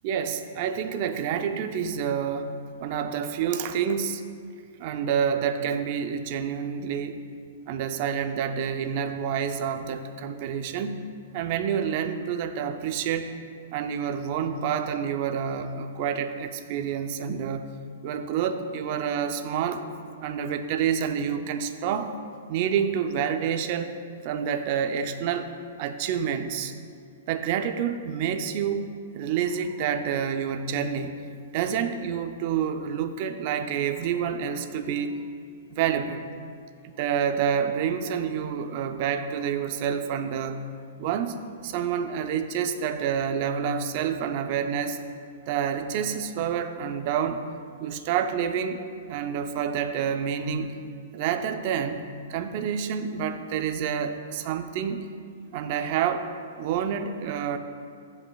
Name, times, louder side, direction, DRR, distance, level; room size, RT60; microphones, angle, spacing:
voice 1, 0.0-2.5 2.8-4.2 4.8-7.2 7.7-11.0 11.3-13.3 13.7-17.7 18.0-19.8 20.2-22.1 22.5-23.9 24.2-25.5 25.8-26.7 27.3-28.9 29.1-31.2 31.5-35.2 35.7-36.3 36.8-40.6 41.0-41.4 41.6-45.0 45.5-47.4 47.8-48.8 49.1-50.7 51.1-52.0 52.3-55.1 55.5-56.3 56.6-57.6, right 8 dB, 45° right, 8 dB, 0.5 m, -28 dB
15.5 x 5.4 x 2.3 m, 2.3 s
hypercardioid pair, 150°, 0 cm